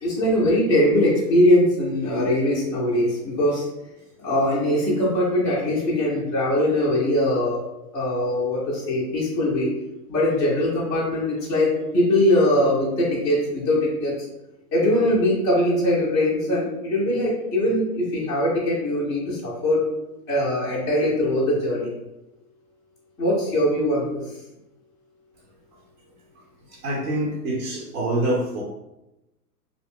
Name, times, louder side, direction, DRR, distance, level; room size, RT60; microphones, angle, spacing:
voice 1, 0.0-3.7 4.2-7.6 7.9-9.7 10.1-14.1 14.7-19.8 20.3-21.9 23.2-24.2, left 1 dB, 10° left, -8 dB, 0.3 m, -21 dB
voice 2, 26.8-28.6, right 1 dB, 70° right, -5 dB, 0.9 m, -25 dB
2.5 x 2.0 x 3.3 m, 0.94 s
hypercardioid pair, 110°, 47 cm